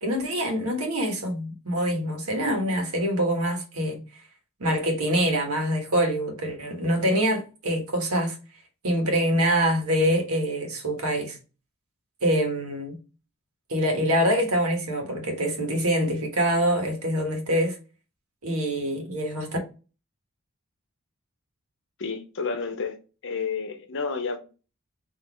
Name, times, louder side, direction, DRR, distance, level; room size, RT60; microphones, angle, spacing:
voice 1, 0.0-4.0 4.6-8.3 8.8-11.4 12.2-13.0 13.7-17.8 18.4-19.5, equal, 85° right, 1.4 m, -25 dB
voice 2, 22.0-23.0 23.2-24.4, left 5 dB, 60° left, 0.8 m, -30 dB
4.0 x 2.9 x 4.4 m
head